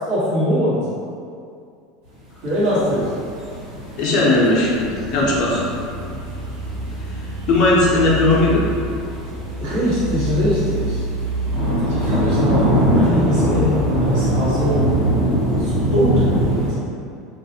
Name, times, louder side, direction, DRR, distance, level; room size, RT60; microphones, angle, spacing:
voice 1, 0.1-0.8 2.4-3.1 9.6-11.0 11.9-14.8 15.6-16.7, equal, 65° right, -10 dB, 1.0 m, -22 dB
sound 1, 2.5-16.7, equal, 85° right, 1.2 m, -23 dB
voice 2, 4.0-5.7 7.5-8.6, left 2 dB, 45° left, -5 dB, 0.5 m, -17 dB
sound 2, 4.7-14.7, right 1 dB, 25° right, 0.5 m, -29 dB
2.3 x 2.0 x 2.7 m, 2.4 s
supercardioid pair, 165°, 0 cm